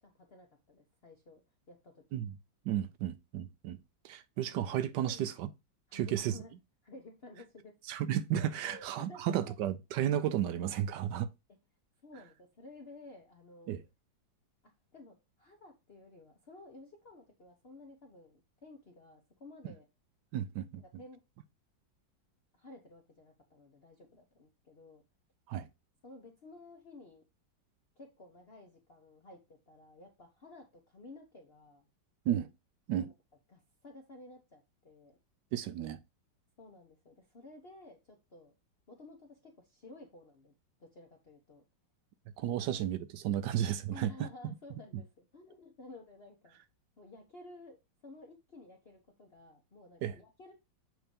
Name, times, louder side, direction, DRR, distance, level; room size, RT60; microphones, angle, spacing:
voice 1, 0.0-1.4 1.7-2.0 4.5-4.6 5.0-5.2 5.9-6.5 6.8-7.7 8.6-9.6 12.0-13.8 14.9-19.9 21.0-21.2 22.5-25.0 26.0-27.2 28.0-31.9 32.9-33.1 33.5-35.2 36.6-38.5 38.9-40.5 40.8-41.6 42.4-42.7 43.9-46.6 47.0-47.8 48.0-50.5, left 2 dB, 40° left, 0.9 m, -54 dB
voice 2, 2.7-3.8 4.0-5.5 5.9-6.4 7.9-11.3 13.7-13.8 20.3-20.8 25.5-25.7 32.3-32.5 32.9-33.1 35.5-36.0 42.4-44.1 50.0-50.2, right 11 dB, 75° right, 1.1 m, -33 dB
7.7 x 2.8 x 5.2 m
omnidirectional pair, 2.1 m